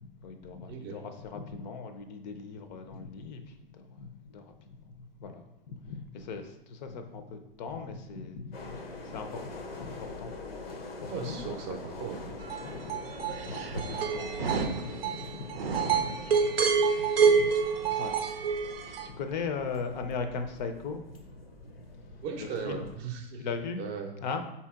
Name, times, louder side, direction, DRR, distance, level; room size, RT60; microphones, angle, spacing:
voice 1, 0.0-4.9 5.2-11.5 12.6-13.0 13.3-18.4 18.8-21.0 22.4-22.9 23.4-23.8 24.2-24.4, left 5 dB, 50° left, 7 dB, 0.5 m, -39 dB
sound 1, 8.5-23.0, left 2 dB, 85° left, 0.7 m, -45 dB
voice 2, 11.1-12.3 17.8-17.9 22.2-23.5 23.8-24.1, right 6 dB, 30° right, 3 dB, 0.6 m, -37 dB
sound 2, 12.4-19.1, right 5 dB, 85° right, 0.6 m, -27 dB
4.1 x 2.9 x 3.5 m, 0.89 s
hypercardioid pair, 110°, 29 cm